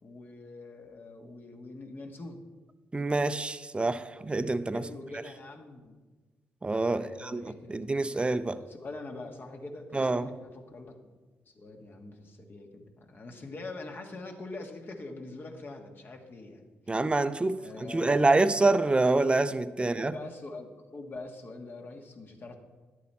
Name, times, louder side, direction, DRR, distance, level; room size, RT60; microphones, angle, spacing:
voice 1, 0.0-2.4 4.7-6.0 6.9-7.8 8.5-11.0 11.4-16.9 17.6-18.3 19.8-22.5, left 2 dB, 45° left, 1.6 m, -44 dB
voice 2, 2.9-4.9 6.6-7.4 7.7-8.6 9.9-10.3 16.9-20.1, right 2 dB, 20° right, 0.6 m, -26 dB
11.0 x 8.3 x 4.3 m
supercardioid pair, 55°, 5 cm